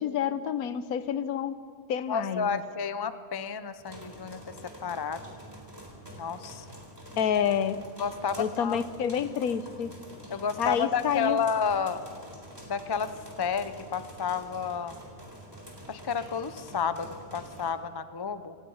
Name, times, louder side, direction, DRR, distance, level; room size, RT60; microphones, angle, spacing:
voice 1, 0.0-1.6 1.9-2.6 7.2-7.8 8.4-10.0 10.6-11.4, left 8 dB, 75° left, 13 dB, 1.3 m, -28 dB
voice 2, 2.1-4.5 4.8-5.2 6.2-6.7 8.0-8.8 10.3-12.0 12.7-15.0 15.9-18.6, left 6 dB, 30° left, 12 dB, 0.4 m, -31 dB
sound 1, 3.8-17.7, equal, 15° right, 3.7 m, -46 dB
27.5 x 17.5 x 5.6 m, 2.2 s
omnidirectional pair, 1.6 m